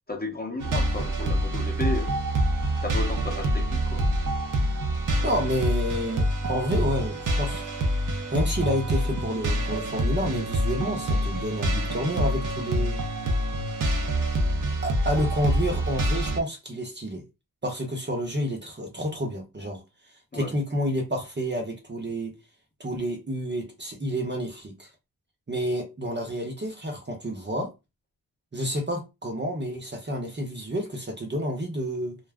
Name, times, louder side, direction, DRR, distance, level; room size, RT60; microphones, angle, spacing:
voice 1, 0.1-2.1 2.8-4.1 20.3-20.5, left 1 dB, 25° left, 0.8 m, -33 dB
sound 1, 0.6-16.4, right 1 dB, 55° right, 0.6 m, -26 dB
voice 2, 5.2-7.6 8.3-13.0 14.8-17.2 17.6-19.8 20.3-22.3 22.8-24.9 25.5-27.7 28.5-32.2, equal, 30° right, 0.8 m, -29 dB
2.4 x 2.0 x 3.4 m
wide cardioid pair, 85°, 38 cm